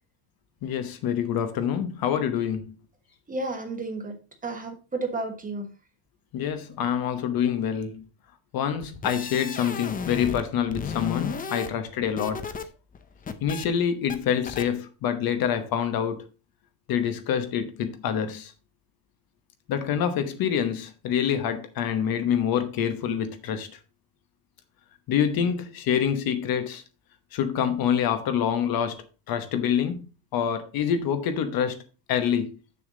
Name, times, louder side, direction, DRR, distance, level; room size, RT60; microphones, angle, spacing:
voice 1, 0.6-2.7 6.3-8.0 8.5-12.6 13.4-16.2 16.9-18.5 19.7-23.7 25.1-26.8 27.3-30.0 30.3-31.8 32.1-32.6, left 8 dB, 50° left, 1.0 m, -26 dB
voice 2, 3.3-4.2 4.4-5.7, right 2 dB, 15° right, 1.3 m, -32 dB
sound 1, 8.8-10.4 10.7-12.6 12.9-13.7 14.1-14.2 14.5-14.6, left 6 dB, 20° left, 0.6 m, -34 dB
7.1 x 6.8 x 3.8 m
cardioid pair, 155°, 46 cm